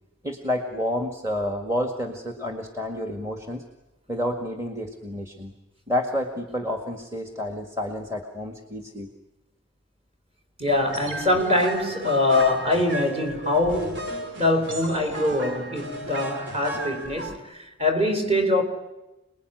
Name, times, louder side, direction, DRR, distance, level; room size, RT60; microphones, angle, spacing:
voice 1, 0.2-3.6 4.1-5.5 5.9-9.1, left 1 dB, 15° right, 1.8 m, -29 dB
voice 2, 10.6-18.6, left 2 dB, 35° right, 4.4 m, -23 dB
sound 1, 10.7-17.4, right 1 dB, 65° right, 2.9 m, -35 dB
28.5 x 20.5 x 9.2 m
head